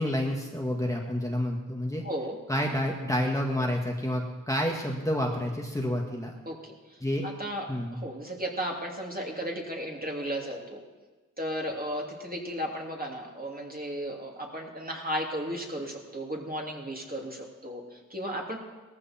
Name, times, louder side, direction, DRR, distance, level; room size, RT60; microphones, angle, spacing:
voice 1, 0.0-2.0 2.5-6.3 7.0-7.3 7.7-8.0, left 1 dB, 10° left, -1 dB, 2.0 m, -29 dB
voice 2, 2.0-2.4 6.5-10.8 11.4-18.6, equal, 25° right, 0 dB, 2.9 m, -35 dB
17.5 x 14.5 x 4.5 m, 1.3 s
cardioid pair, 50°, 35 cm